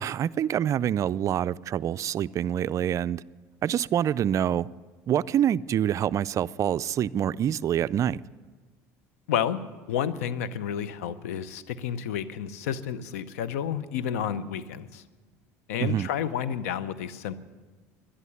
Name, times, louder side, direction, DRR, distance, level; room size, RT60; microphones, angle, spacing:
voice 1, 0.0-3.2 3.6-4.7 5.1-8.2 15.8-16.1, right 10 dB, 45° right, 0.3 m, -26 dB
voice 2, 9.3-9.6 9.9-15.0 15.7-17.4, left 9 dB, 85° left, 0.7 m, -30 dB
11.5 x 11.0 x 9.6 m
supercardioid pair, 85°, 8 cm